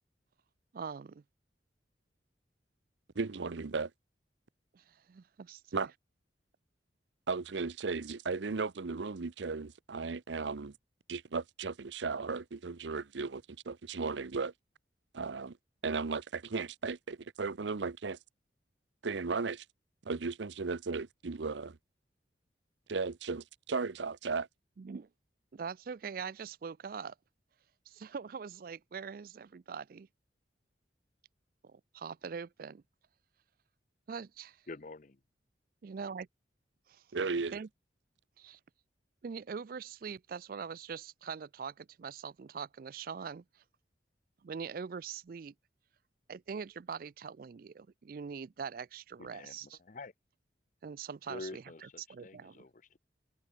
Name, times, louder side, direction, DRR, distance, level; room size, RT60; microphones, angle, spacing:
voice 1, 0.7-1.2 4.7-5.6 24.8-25.1 25.5-27.1 27.9-30.1 31.6-32.8 34.1-34.6 35.8-36.3 36.9-37.0 37.5-37.7 38.4-38.6 39.2-43.4 44.4-45.5 46.3-49.8 50.8-52.6, right 6 dB, 50° right, 0.4 m, -43 dB
voice 2, 3.2-3.9 5.7-5.9 7.3-10.7 11.1-14.5 15.1-15.6 15.8-18.2 19.0-19.6 20.0-21.8 22.9-24.5 37.1-37.6, right 4 dB, 85° right, 0.7 m, -35 dB
voice 3, 34.7-35.2 49.2-50.1 51.3-53.0, left 3 dB, 45° left, 0.7 m, -47 dB
head